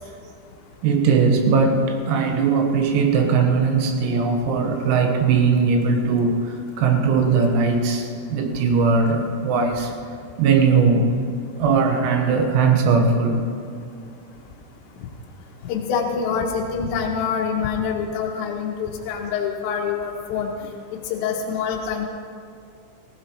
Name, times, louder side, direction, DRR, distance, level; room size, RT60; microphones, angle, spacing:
voice 1, 0.8-9.9 10.4-11.1 11.6-13.5, right 5 dB, 90° right, 3 dB, 4.0 m, -19 dB
voice 2, 15.7-20.5 20.9-22.1, left 6 dB, 80° left, 0 dB, 2.8 m, -25 dB
18.5 x 15.5 x 3.1 m, 2.3 s
omnidirectional pair, 6.0 m